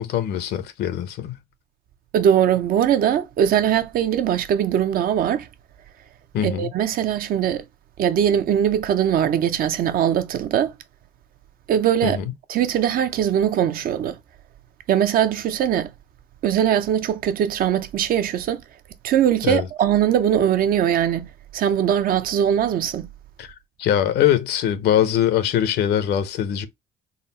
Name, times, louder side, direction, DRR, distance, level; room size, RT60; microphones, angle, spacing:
voice 1, 0.0-1.4 6.3-6.7 12.0-12.3 19.4-19.6 23.4-23.5 23.8-26.7, left 10 dB, 75° left, 0.7 m, -22 dB
voice 2, 2.1-5.5 6.4-7.6 8.0-10.7 11.7-12.2 12.5-14.2 14.9-15.9 16.4-18.6 19.0-21.3 21.5-23.1, right 9 dB, 60° right, 0.6 m, -21 dB
3.9 x 2.0 x 4.0 m
cardioid pair, 110°, 17 cm